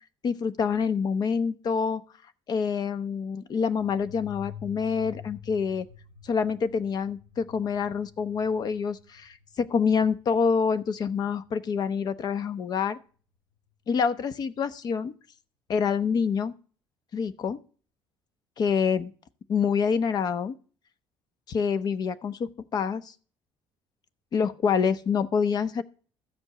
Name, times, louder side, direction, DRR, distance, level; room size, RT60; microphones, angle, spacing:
voice 1, 0.2-2.0 2.5-5.9 6.2-13.0 13.9-15.1 15.7-16.5 17.1-17.6 18.6-19.1 19.5-20.6 21.5-23.1 24.3-25.8, left 6 dB, 40° left, 0.8 m, -26 dB
sound 1, 3.5-11.9, left 8 dB, 75° left, 5.0 m, -48 dB
14.0 x 5.2 x 8.2 m
cardioid pair, 135°, 10 cm